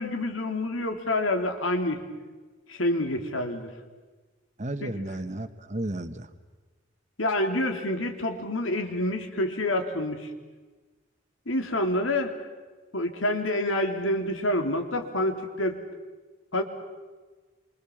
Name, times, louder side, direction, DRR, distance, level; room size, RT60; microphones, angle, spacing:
voice 1, 0.0-2.0 2.7-3.7 4.8-5.0 7.2-10.3 11.5-12.4 12.9-15.8 16.5-16.6, left 1 dB, 90° left, 5 dB, 3.1 m, -27 dB
voice 2, 4.6-6.3, right 1 dB, 35° right, 10 dB, 1.2 m, -33 dB
27.5 x 25.0 x 7.2 m, 1.3 s
head